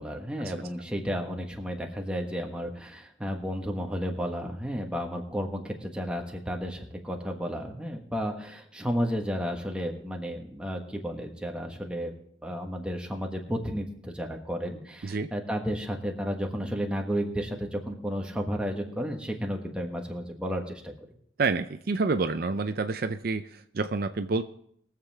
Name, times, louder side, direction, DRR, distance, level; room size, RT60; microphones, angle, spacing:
voice 1, 0.0-12.1 12.4-20.9, equal, 5° right, 1 dB, 1.3 m, -32 dB
voice 2, 21.4-24.4, right 3 dB, 50° right, 9 dB, 0.5 m, -28 dB
22.0 x 7.4 x 3.5 m, 0.69 s
head